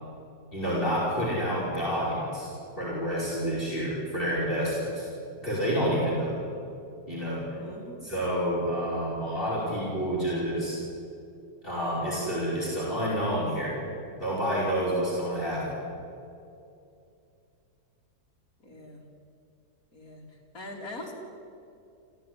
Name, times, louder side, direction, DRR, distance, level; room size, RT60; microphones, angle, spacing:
voice 1, 0.5-5.1 5.4-6.4 7.1-7.4 8.0-10.8 11.6-13.8 14.2-15.7, equal, 30° left, -6 dB, 5.5 m, -29 dB
voice 2, 7.6-8.1 18.6-19.0 19.9-20.2 20.5-21.1, left 1 dB, 50° left, -1 dB, 4.3 m, -42 dB
25.5 x 16.0 x 9.8 m, 2.6 s
omnidirectional pair, 1.9 m